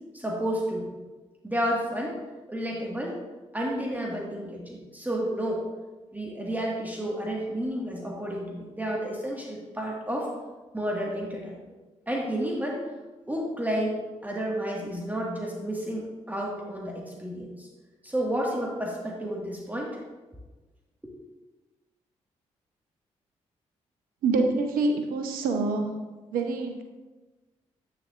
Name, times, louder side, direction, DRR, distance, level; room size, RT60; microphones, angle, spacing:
voice 1, 0.1-0.9 1.4-2.2 2.5-3.2 3.5-5.7 6.1-10.3 10.7-11.7 12.1-12.8 13.3-17.7 18.0-20.0, equal, 10° right, -2 dB, 1.7 m, -31 dB
voice 2, 24.2-26.0 26.3-26.8, right 3 dB, 75° right, 5 dB, 0.8 m, -26 dB
8.7 x 6.7 x 2.5 m, 1.2 s
hypercardioid pair, 40°, 15 cm